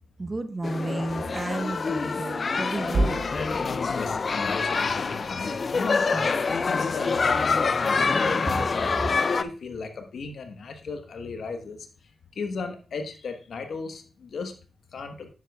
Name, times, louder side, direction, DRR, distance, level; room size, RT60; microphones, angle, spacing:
voice 1, 0.2-3.2 6.1-6.3, right 2 dB, 35° right, 9 dB, 1.0 m, -32 dB
sound 1, 0.6-9.4, left 4 dB, 55° left, 0.4 m, -26 dB
sound 2, 2.9-7.3, right 2 dB, 70° right, 1.2 m, -34 dB
voice 2, 3.9-11.8 12.4-14.5 14.9-15.3, left 4 dB, 75° left, 6 dB, 1.1 m, -35 dB
9.9 x 7.4 x 2.3 m, 0.36 s
supercardioid pair, 45°, 0 cm